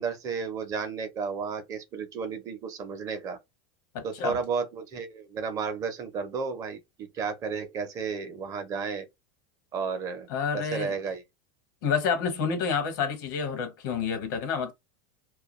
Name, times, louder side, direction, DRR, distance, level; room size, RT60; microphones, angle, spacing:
voice 1, 0.0-3.4 4.0-9.0 9.7-10.3 10.5-11.2, right 5 dB, 30° right, 0.6 m, -33 dB
voice 2, 3.9-4.4 10.3-10.9 11.8-14.7, left 6 dB, 70° left, 1.0 m, -29 dB
2.3 x 2.2 x 3.0 m
supercardioid pair, 140°, 10 cm